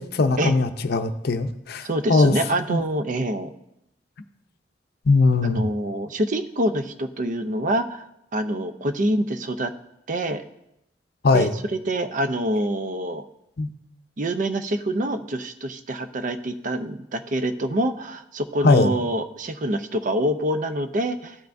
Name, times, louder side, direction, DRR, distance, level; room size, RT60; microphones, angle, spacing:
voice 1, 0.0-2.3 2.7-2.8 5.1-5.7 11.2-11.5 13.6-13.7 18.6-18.9, left 3 dB, 60° left, 9 dB, 0.6 m, -20 dB
voice 2, 1.8-3.5 5.4-8.0 8.3-9.7 10.1-10.4 11.3-11.5 11.9-13.3 14.2-21.4, right 1 dB, 45° right, 9 dB, 0.5 m, -26 dB
15.5 x 5.6 x 2.6 m, 0.84 s
head